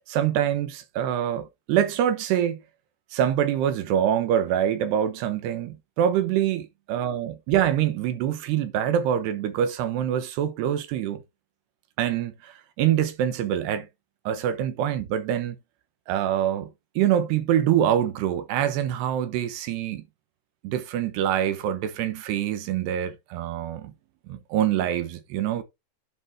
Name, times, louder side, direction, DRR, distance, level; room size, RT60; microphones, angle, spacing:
voice 1, 0.1-2.6 3.1-6.6 6.9-11.2 12.0-13.9 14.3-15.6 16.1-16.7 17.0-20.0 20.6-23.9 24.3-25.6, right 10 dB, 85° right, 3.3 m, -25 dB
10.5 x 5.4 x 3.5 m
omnidirectional pair, 4.6 m